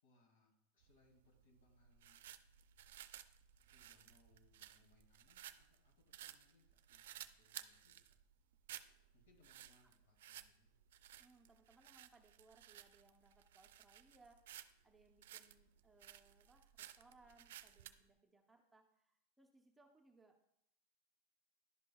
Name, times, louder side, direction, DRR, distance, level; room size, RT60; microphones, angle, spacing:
voice 1, 0.0-2.2 3.7-8.2 9.1-10.7, left 2 dB, 75° left, 1 dB, 2.3 m, -74 dB
sound 1, 0.8-18.0, right 12 dB, 80° right, 0.4 m, -57 dB
voice 2, 11.2-20.6, right 3 dB, 5° right, 2 dB, 0.7 m, -69 dB
11.0 x 5.4 x 2.3 m, 0.78 s
supercardioid pair, 130°, 0 cm